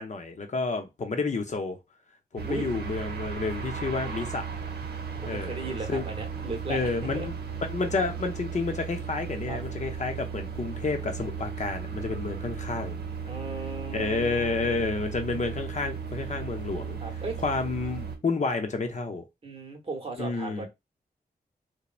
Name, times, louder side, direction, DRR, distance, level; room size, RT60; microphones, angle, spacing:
voice 1, 0.0-1.8 2.3-4.5 5.3-6.0 6.7-7.3 7.6-13.0 13.9-17.0 17.4-19.2 20.2-20.7, left 3 dB, 45° left, 0.7 m, -30 dB
sound 1, 2.4-18.2, right 6 dB, 85° right, 0.7 m, -36 dB
voice 2, 5.2-7.3 9.5-9.6 13.3-14.8 17.0-17.4 19.4-20.7, right 3 dB, 35° right, 0.9 m, -37 dB
3.0 x 2.1 x 2.4 m
cardioid pair, 60°, 16 cm